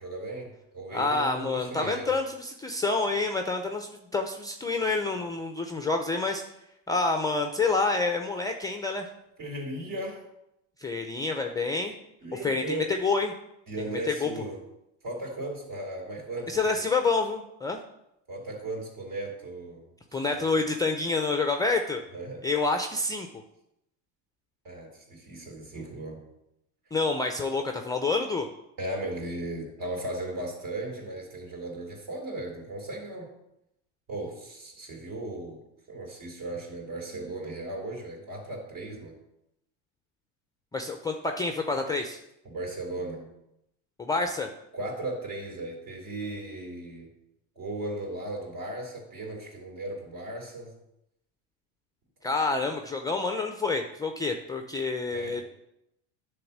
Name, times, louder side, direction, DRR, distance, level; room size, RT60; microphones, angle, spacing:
voice 1, 0.0-2.2 9.4-10.2 12.2-12.9 13.7-14.6 15.0-16.8 18.3-19.9 20.3-20.5 22.1-22.5 24.6-26.2 28.8-33.3 34.1-35.6 35.9-39.1 42.4-43.3 44.7-47.1 47.6-50.7 55.1-55.4, right 2 dB, 55° right, 0 dB, 3.7 m, -36 dB
voice 2, 0.9-6.4 6.9-9.1 10.8-11.9 12.4-13.3 13.9-14.3 16.5-17.8 20.1-22.0 22.4-23.3 26.9-28.5 40.7-42.2 44.0-44.5 52.2-55.4, left 3 dB, 10° left, 4 dB, 0.5 m, -28 dB
10.5 x 3.6 x 7.3 m, 0.83 s
supercardioid pair, 130°, 40 cm